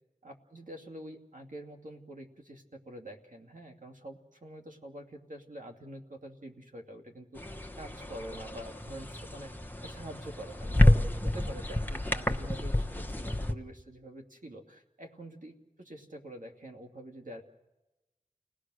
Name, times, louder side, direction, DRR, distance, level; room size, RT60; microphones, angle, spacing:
voice 1, 0.2-7.4 7.7-9.5 9.8-17.4, right 1 dB, 65° right, 3 dB, 2.7 m, -46 dB
sound 1, 7.4-13.5, left 1 dB, 15° left, 1.2 m, -29 dB
30.0 x 19.0 x 6.4 m, 1.0 s
wide cardioid pair, 45°, 14 cm